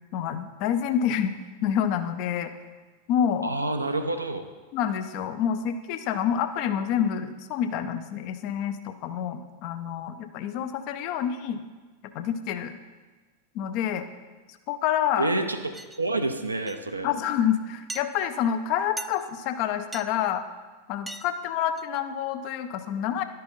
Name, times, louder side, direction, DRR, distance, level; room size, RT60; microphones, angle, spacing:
voice 1, 0.1-1.4 1.6-2.5 3.1-3.5 4.7-11.6 12.1-12.8 13.5-14.1 14.7-15.3 17.0-20.4 20.9-23.2, left 9 dB, 45° left, 9 dB, 0.6 m, -28 dB
voice 2, 3.4-4.4 15.2-15.7 16.0-17.1, right 2 dB, 80° right, 6 dB, 0.6 m, -28 dB
sound 1, 15.7-16.0 16.7-16.9 17.9-18.1 19.0-19.3 19.9-20.1 21.1-21.3 21.6-22.0, right 2 dB, 5° right, 0.3 m, -38 dB
11.0 x 5.4 x 4.0 m, 1.3 s
figure-of-eight pair, 90°, 0 cm